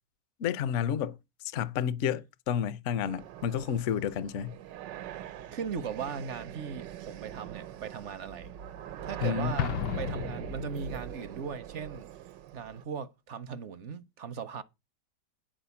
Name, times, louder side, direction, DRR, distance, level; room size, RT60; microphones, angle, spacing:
voice 1, 0.4-4.6 9.2-9.7, left 9 dB, 60° left, 0.8 m, -31 dB
sound 1, 3.0-12.8, right 10 dB, 85° right, 1.4 m, -43 dB
voice 2, 5.5-8.5 9.0-12.1 12.5-14.6, right 6 dB, 60° right, 0.8 m, -38 dB
Explosion, 9.6-11.2, left 9 dB, 75° left, 1.3 m, -34 dB
10.0 x 4.7 x 6.9 m
omnidirectional pair, 1.9 m